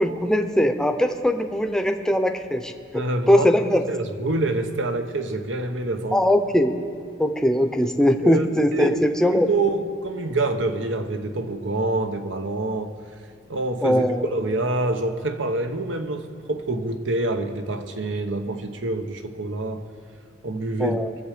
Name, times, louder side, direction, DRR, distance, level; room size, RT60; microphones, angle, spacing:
voice 1, 0.0-3.8 6.1-6.7 7.2-9.5 13.8-14.3 20.8-21.1, equal, 5° left, 7 dB, 0.7 m, -21 dB
voice 2, 2.9-3.5 3.9-6.2 8.2-8.9 9.3-12.9 13.5-19.9 20.4-21.0, right 2 dB, 85° right, 7 dB, 1.0 m, -26 dB
23.0 x 7.7 x 5.0 m, 2.1 s
head